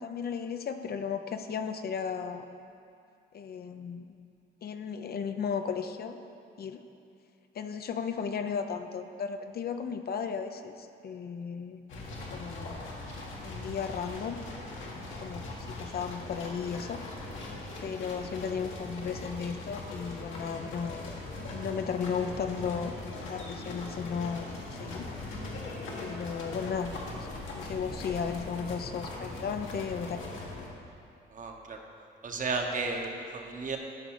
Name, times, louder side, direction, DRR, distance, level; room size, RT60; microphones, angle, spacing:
voice 1, 0.0-2.5 3.3-4.0 4.6-6.2 6.6-6.8 7.5-11.8 12.3-13.1 13.4-14.4 15.2-17.0 17.8-21.1 21.5-25.1 26.0-30.2, left 6 dB, 50° left, 8 dB, 0.6 m, -35 dB
sound 1, 11.9-30.7, left 2 dB, 75° left, 1.6 m, -40 dB
voice 2, 31.3-31.8 32.2-33.8, right 3 dB, 40° right, 2 dB, 1.1 m, -33 dB
13.0 x 5.3 x 4.8 m, 2.5 s
cardioid pair, 90°, 20 cm